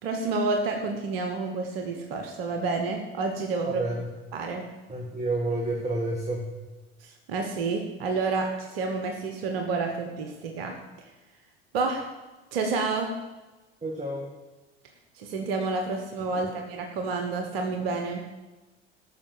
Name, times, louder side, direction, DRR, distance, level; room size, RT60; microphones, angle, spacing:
voice 1, 0.0-3.8 4.3-4.7 7.0-10.8 11.7-12.1 12.5-13.2 15.2-18.2, right 3 dB, 70° right, 4 dB, 1.4 m, -29 dB
voice 2, 3.6-4.1 4.9-6.5 13.8-14.3, right 2 dB, 20° right, -1 dB, 2.0 m, -29 dB
13.5 x 5.9 x 7.1 m, 1.1 s
figure-of-eight pair, 65°, 31 cm